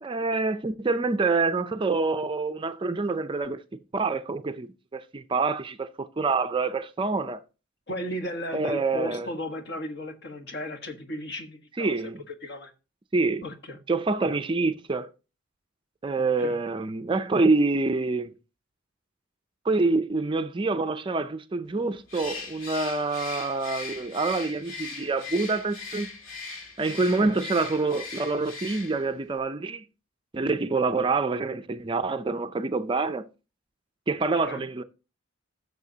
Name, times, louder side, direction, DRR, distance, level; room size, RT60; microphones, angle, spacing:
voice 1, 0.0-3.6 3.9-4.7 4.9-7.4 8.5-9.3 11.8-12.2 13.1-13.4 13.9-15.1 16.0-18.3 19.6-26.1 26.8-29.8 30.3-33.3 34.1-34.8, right 3 dB, 25° right, 0.4 m, -26 dB
voice 2, 7.9-11.9 12.3-12.7 13.4-13.8 16.4-16.6 27.2-27.4 34.4-34.6, left 1 dB, 55° left, 1.4 m, -35 dB
Bird, 22.1-29.2, left 4 dB, 80° left, 2.1 m, -39 dB
13.0 x 6.6 x 2.8 m
head